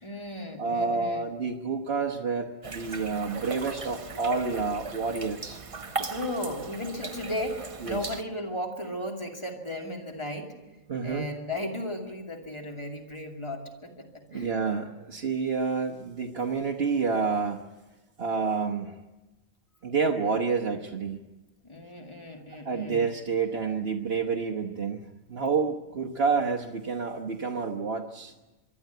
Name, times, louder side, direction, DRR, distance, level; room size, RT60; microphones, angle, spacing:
voice 1, 0.0-1.3 6.0-10.6 11.0-14.5 21.6-23.1, left 1 dB, 20° left, 2 dB, 2.7 m, -35 dB
voice 2, 0.6-5.6 7.8-8.0 10.9-11.3 14.3-17.6 18.2-19.0 19.8-21.2 22.6-28.3, right 5 dB, 50° right, 0 dB, 1.3 m, -29 dB
sound 1, 2.6-8.2, right 4 dB, 30° right, 0.8 m, -38 dB
24.0 x 12.5 x 9.3 m, 1.1 s
omnidirectional pair, 1.3 m